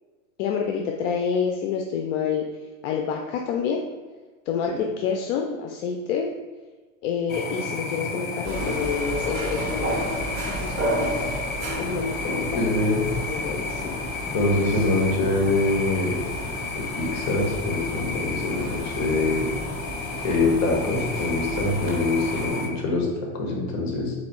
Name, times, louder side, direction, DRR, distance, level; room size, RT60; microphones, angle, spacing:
voice 1, 0.4-2.4 2.8-3.8 4.5-6.3 7.0-10.0 10.5-11.3 11.8-14.0 14.7-14.8, left 6 dB, 70° left, 2 dB, 0.6 m, -28 dB
sound 1, 7.3-22.7, left 4 dB, 25° left, 0.5 m, -32 dB
sound 2, 8.4-22.5, right 1 dB, 35° right, 1.4 m, -33 dB
voice 2, 12.5-13.0 14.3-16.3 17.0-19.5 20.2-23.1 23.3-24.1, left 2 dB, 45° left, 0 dB, 1.3 m, -24 dB
4.3 x 2.6 x 4.3 m, 1.3 s
supercardioid pair, 125°, 38 cm